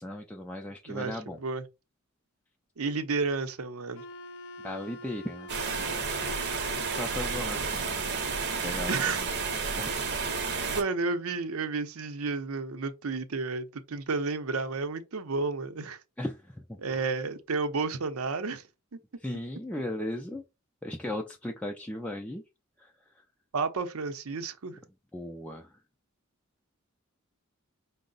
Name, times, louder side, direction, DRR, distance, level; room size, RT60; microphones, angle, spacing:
voice 1, 0.0-1.4 4.6-5.9 6.9-8.1 8.6-9.3 9.7-10.0 16.2-16.8 19.2-20.4 20.8-22.4 22.8-23.2 25.1-25.8, left 1 dB, 5° left, 0.3 m, -37 dB
voice 2, 0.9-1.6 2.8-4.0 8.5-9.2 10.7-16.0 16.8-18.6 23.5-24.8, right 4 dB, 85° right, 0.6 m, -31 dB
Wind instrument woodwind instrument, 4.0-8.1, left 1 dB, 65° left, 0.6 m, -45 dB
sound 1, 5.5-10.8, right 4 dB, 50° right, 0.7 m, -31 dB
5.4 x 2.0 x 3.8 m
head